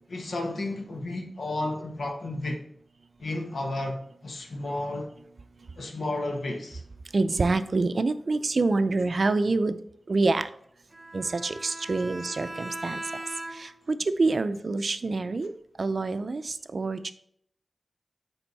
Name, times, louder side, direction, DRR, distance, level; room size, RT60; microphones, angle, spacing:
voice 1, 0.1-2.6 3.2-5.1 5.8-6.8, left 2 dB, 80° left, 1.1 m, -32 dB
voice 2, 7.1-9.8 10.1-10.5 11.1-13.0 13.5-15.5 15.8-17.1, right 3 dB, 60° right, 0.4 m, -26 dB
Bowed string instrument, 10.9-13.9, right 1 dB, 20° right, 1.1 m, -39 dB
8.9 x 3.5 x 4.1 m
wide cardioid pair, 60°, 0 cm